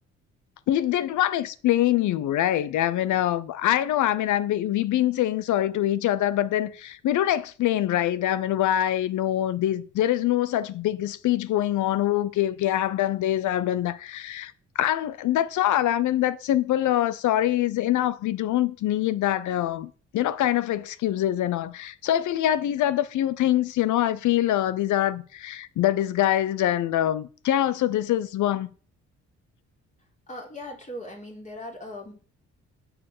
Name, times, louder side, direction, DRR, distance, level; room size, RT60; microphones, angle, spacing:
voice 1, 0.7-28.7, left 12 dB, 75° left, 0.7 m, -24 dB
voice 2, 30.3-32.1, left 1 dB, 25° left, 4.0 m, -39 dB
8.7 x 4.8 x 6.7 m
cardioid pair, 90°, 30 cm